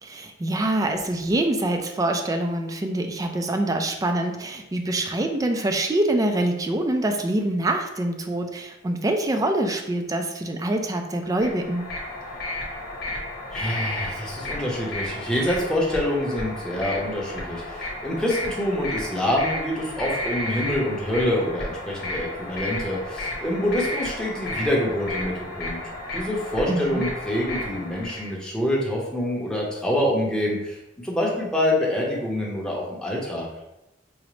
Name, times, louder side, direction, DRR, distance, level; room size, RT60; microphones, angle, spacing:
voice 1, 0.0-11.9 26.7-27.1, right 1 dB, 20° right, 5 dB, 0.3 m, -25 dB
sound 1, 11.2-28.3, left 1 dB, 55° left, 0.9 m, -33 dB
voice 2, 13.5-25.8 26.1-33.5, left 1 dB, 5° left, -4 dB, 0.7 m, -26 dB
4.9 x 2.0 x 3.0 m, 0.92 s
head